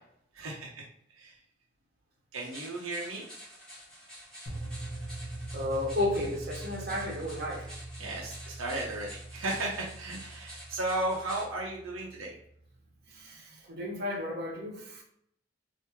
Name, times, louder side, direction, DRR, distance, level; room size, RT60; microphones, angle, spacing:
voice 1, 0.3-0.8 1.2-1.4 2.3-3.2 8.0-12.4, right 2 dB, 80° right, -2 dB, 0.7 m, -35 dB
sound 1, 2.3-11.5, equal, 5° left, 1.4 m, -49 dB
sound 2, 4.5-12.6, right 1 dB, 60° left, 0.9 m, -43 dB
voice 2, 5.5-7.7 13.1-15.0, left 1 dB, 50° right, -1 dB, 0.8 m, -33 dB
3.4 x 2.6 x 2.9 m, 0.71 s
head